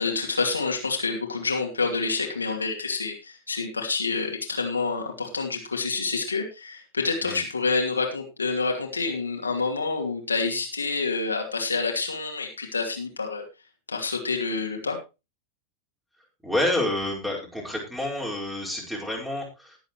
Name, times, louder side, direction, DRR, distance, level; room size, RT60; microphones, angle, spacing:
voice 1, 0.0-13.4 13.9-15.0, left 4 dB, 75° left, 1 dB, 2.6 m, -28 dB
voice 2, 16.4-19.8, left 1 dB, 5° right, -1 dB, 4.9 m, -28 dB
19.5 x 7.9 x 3.1 m, 0.27 s
figure-of-eight pair, 90°, 0 cm